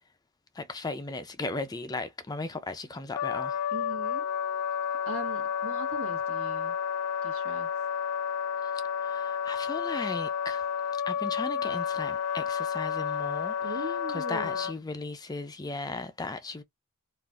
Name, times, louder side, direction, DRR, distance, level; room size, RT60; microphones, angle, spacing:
voice 1, 0.5-3.6 8.6-8.7 9.0-10.7 11.1-16.6, left 3 dB, 15° left, 0.4 m, -36 dB
Wind instrument woodwind instrument, 3.1-14.7, left 7 dB, 85° left, 0.4 m, -31 dB
voice 2, 3.7-4.2 5.1-6.8 7.2-7.7 13.6-14.7, right 1 dB, 70° right, 1.2 m, -40 dB
3.7 x 2.5 x 2.4 m
head